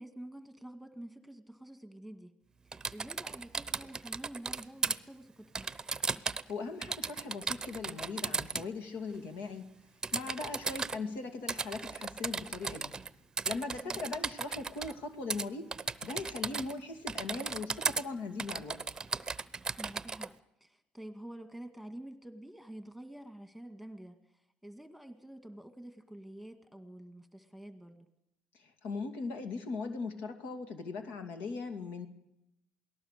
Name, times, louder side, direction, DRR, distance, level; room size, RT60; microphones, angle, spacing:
voice 1, 0.0-2.3 2.9-5.7 13.8-14.0 19.8-20.4 20.6-24.2 24.6-28.1, right 1 dB, ahead, 7 dB, 2.0 m, -48 dB
Typing, 2.7-5.0 5.6-6.5 6.8-8.7 10.0-11.0 11.5-13.1 13.4-14.9 15.3-15.5 15.7-16.8 17.1-18.0 18.4-20.3, right 4 dB, 20° right, 0.8 m, -36 dB
voice 2, 6.5-9.6 10.1-12.9 13.4-15.7 16.0-18.8 28.6-32.1, left 4 dB, 70° left, 6 dB, 2.6 m, -39 dB
28.0 x 18.5 x 6.8 m, 0.85 s
cardioid pair, 105°, 3 cm